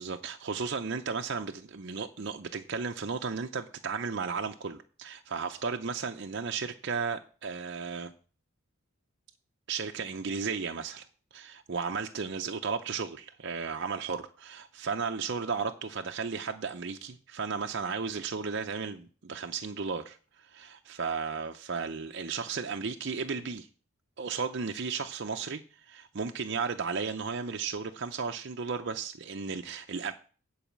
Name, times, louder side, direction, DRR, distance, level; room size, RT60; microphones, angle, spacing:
voice 1, 0.0-8.1 9.7-11.1 11.3-23.7 24.2-30.1, right 5 dB, 55° right, 0.6 m, -34 dB
10.0 x 4.8 x 7.4 m
head